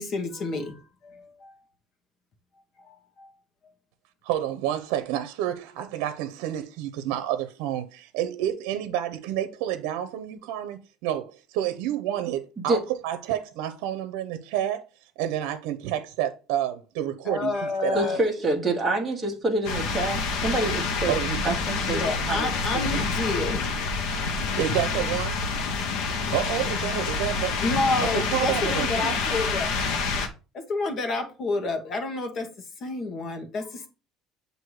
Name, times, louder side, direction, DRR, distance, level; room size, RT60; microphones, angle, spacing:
voice 1, 0.0-1.5 2.8-3.3 17.3-18.2 21.9-23.8 27.6-29.9 30.5-32.5 32.8-33.9, left 3 dB, 40° left, 1.0 m, -29 dB
voice 2, 4.2-18.2 21.1-21.6 24.5-25.4 26.3-27.6 28.0-29.2, right 11 dB, 80° right, 0.7 m, -29 dB
voice 3, 17.9-21.1 21.4-22.5, right 2 dB, 10° right, 1.1 m, -27 dB
sound 1, 19.6-30.3, left 4 dB, 80° left, 1.0 m, -27 dB
7.7 x 2.7 x 4.7 m
cardioid pair, 160°, 0 cm